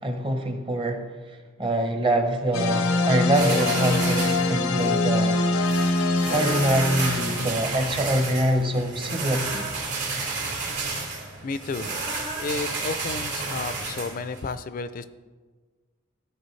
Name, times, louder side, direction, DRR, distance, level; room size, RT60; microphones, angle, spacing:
voice 1, 0.0-1.0 1.6-5.4 6.3-9.7, right 1 dB, 25° right, 5 dB, 0.7 m, -24 dB
sound 1, 2.5-7.7, left 2 dB, 80° left, 0.6 m, -24 dB
sound 2, 3.3-14.5, right 3 dB, 85° right, 2.5 m, -31 dB
voice 2, 11.4-11.9 12.4-15.0, left 4 dB, 40° left, 13 dB, 0.4 m, -32 dB
14.0 x 4.7 x 3.2 m, 1.4 s
head